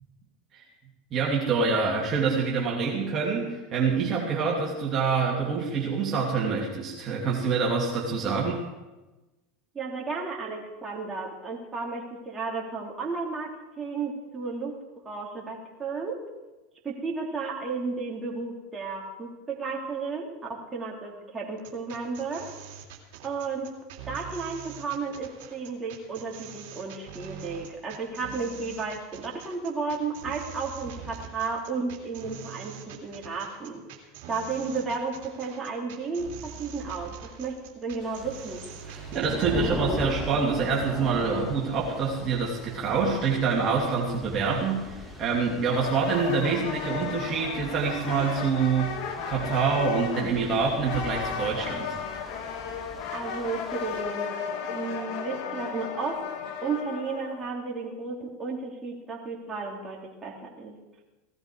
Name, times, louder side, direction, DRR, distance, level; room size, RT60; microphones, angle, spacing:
voice 1, 1.1-8.7 38.9-49.0 49.3-52.0, right 5 dB, 40° right, -3 dB, 3.0 m, -26 dB
voice 2, 9.7-14.8 15.1-16.2 16.8-22.5 23.2-23.7 24.1-33.8 34.3-38.6 53.1-54.3 54.7-56.2 56.6-60.7, right 4 dB, 20° right, -2 dB, 3.5 m, -33 dB
sound 1, 21.6-39.6, right 9 dB, 65° right, 2.8 m, -44 dB
Thunder / Rain, 38.0-54.0, left 1 dB, 10° left, 2.6 m, -40 dB
sound 2, 45.7-57.5, left 6 dB, 60° left, 1.8 m, -35 dB
17.0 x 13.0 x 4.9 m, 1.1 s
hypercardioid pair, 90°, 0 cm